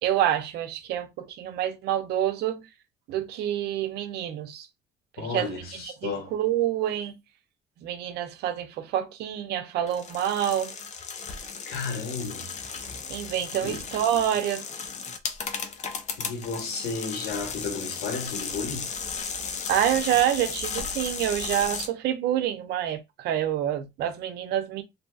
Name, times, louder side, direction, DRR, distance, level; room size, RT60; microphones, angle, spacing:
voice 1, 0.0-2.7 3.1-4.7 5.2-7.2 7.8-10.7 13.1-14.7 19.7-24.8, right 11 dB, 75° right, 0.6 m, -27 dB
voice 2, 5.2-6.3 11.7-12.5 13.6-13.8 16.2-18.9, left 4 dB, 75° left, 1.3 m, -33 dB
sound 1, 9.9-21.9, left 5 dB, 45° left, 0.6 m, -35 dB
2.7 x 2.7 x 2.3 m
cardioid pair, 110°, 17 cm